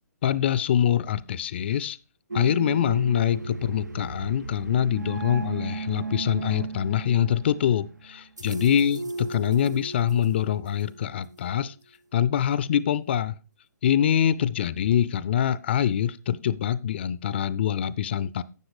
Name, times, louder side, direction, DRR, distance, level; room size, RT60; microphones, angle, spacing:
voice 1, 0.2-2.0 2.3-11.7 12.1-13.4 13.8-18.4, left 9 dB, 40° left, 18 dB, 0.4 m, -24 dB
sound 1, 2.3-11.4, right 3 dB, 90° right, 0.6 m, -35 dB
12.0 x 7.7 x 3.2 m, 0.32 s
figure-of-eight pair, 130°, 9 cm